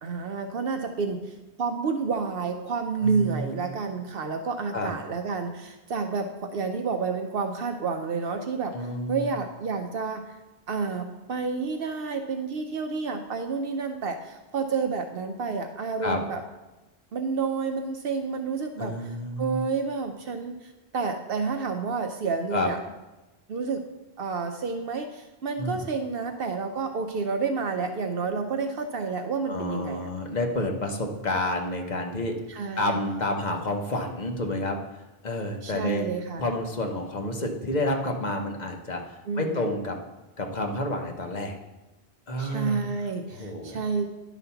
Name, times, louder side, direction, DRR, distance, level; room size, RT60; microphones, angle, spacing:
voice 1, 0.0-10.3 10.7-16.4 17.1-19.0 19.4-22.8 23.5-23.8 24.2-30.1 32.5-33.0 35.6-36.4 39.3-39.7 42.4-44.1, right 5 dB, 65° right, 6 dB, 0.8 m, -30 dB
voice 2, 3.0-3.7 4.7-4.9 8.7-9.3 16.0-16.2 18.8-19.6 22.5-22.7 25.6-25.8 29.5-32.4 32.8-36.1 36.4-40.0 40.4-41.5 42.3-42.8 43.3-43.8, left 1 dB, 45° left, 2 dB, 1.0 m, -29 dB
11.0 x 4.1 x 5.7 m, 1.1 s
omnidirectional pair, 1.1 m